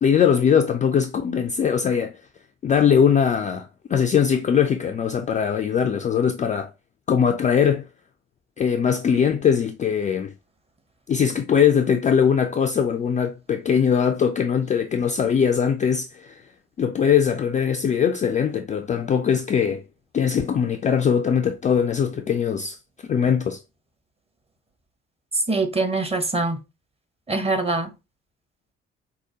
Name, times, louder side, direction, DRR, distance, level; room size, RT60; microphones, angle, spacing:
voice 1, 0.0-2.2 2.6-6.7 7.1-7.9 8.6-10.3 11.1-16.4 16.8-19.8 20.1-22.8 23.1-23.6, left 7 dB, 25° left, 0.3 m, -21 dB
voice 2, 25.5-26.6 27.3-27.9, right 3 dB, 20° right, 0.8 m, -23 dB
4.7 x 2.1 x 2.8 m
figure-of-eight pair, 50°, 32 cm